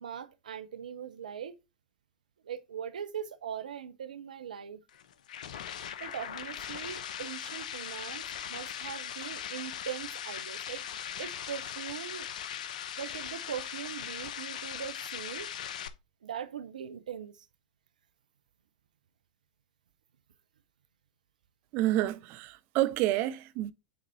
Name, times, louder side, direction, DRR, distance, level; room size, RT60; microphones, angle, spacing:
voice 1, 0.0-1.5 2.4-4.8 5.7-8.2 8.5-12.3 13.0-15.5 16.2-17.5, right 8 dB, 75° right, 0.8 m, -41 dB
sound 1, 4.9-15.9, left 9 dB, 70° left, 0.8 m, -39 dB
voice 2, 21.7-23.7, right 15 dB, 45° right, 0.8 m, -29 dB
7.8 x 4.1 x 4.3 m
hypercardioid pair, 95°, 4 cm